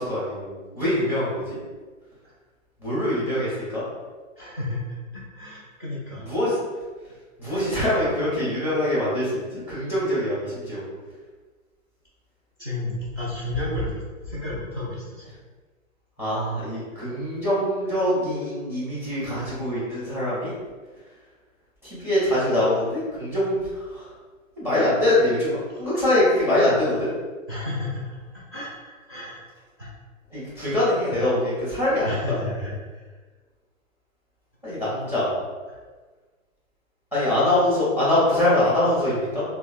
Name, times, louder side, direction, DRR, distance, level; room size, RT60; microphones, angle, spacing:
voice 1, 0.0-1.6 2.8-3.8 6.3-6.6 7.4-9.3 9.7-10.8 16.2-20.5 21.9-23.6 23.9-24.0 24.6-27.1 30.3-32.4 34.6-35.3 37.1-39.4, left 1 dB, 5° right, -9 dB, 1.0 m, -23 dB
voice 2, 4.4-4.8 5.3-6.2 7.5-7.6 12.6-15.2 19.4-19.5 27.5-28.1 28.5-28.7 29.1-29.4 29.8-29.9 32.1-32.7 35.7-35.8, left 2 dB, 20° right, -10 dB, 0.3 m, -31 dB
3.1 x 2.1 x 2.4 m, 1.4 s
hypercardioid pair, 130°, 41 cm